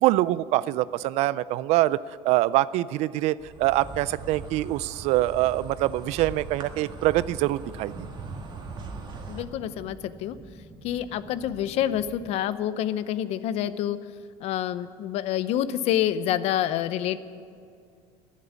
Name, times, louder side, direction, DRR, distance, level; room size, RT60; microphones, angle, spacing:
voice 1, 0.0-7.9, right 16 dB, 65° right, 19 dB, 0.4 m, -24 dB
Insect, 3.4-9.4, right 4 dB, 40° right, 1.8 m, -40 dB
sound 1, 6.7-12.3, right 1 dB, 10° right, 1.2 m, -48 dB
voice 2, 9.3-10.4 10.8-14.0 14.4-17.2, left 11 dB, 60° left, 15 dB, 0.7 m, -27 dB
11.0 x 10.5 x 9.7 m, 2.3 s
cardioid pair, 130°, 12 cm